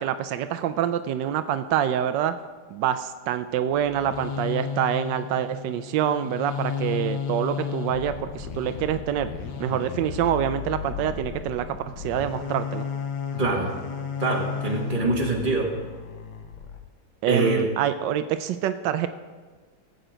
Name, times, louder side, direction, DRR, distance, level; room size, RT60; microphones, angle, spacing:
voice 1, 0.0-2.3 2.7-9.3 9.6-12.9 17.2-19.1, right 10 dB, 85° right, 10 dB, 1.2 m, -26 dB
sound 1, 3.7-16.8, left 7 dB, 70° left, 1.5 m, -33 dB
voice 2, 13.4-13.7 14.2-15.7 17.3-17.6, right 2 dB, 30° right, -1 dB, 2.0 m, -24 dB
16.0 x 8.0 x 5.0 m, 1.4 s
omnidirectional pair, 1.9 m